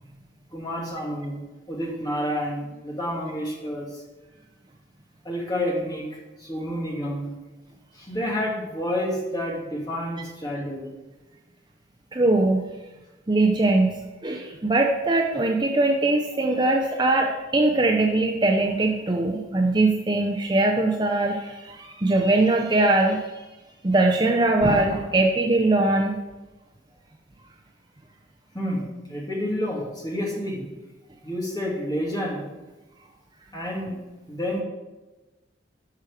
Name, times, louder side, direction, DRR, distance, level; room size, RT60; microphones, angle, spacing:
voice 1, 0.5-1.4 1.7-4.0 5.2-6.1 6.4-7.3 7.9-10.9 28.5-28.8 29.1-30.7 31.2-32.4 33.5-34.0 34.3-34.6, equal, 20° left, -3 dB, 2.1 m, -29 dB
voice 2, 12.1-12.6 13.3-23.4 23.8-26.2, right 2 dB, 20° right, 2 dB, 0.6 m, -21 dB
11.5 x 6.2 x 4.9 m, 1.1 s
head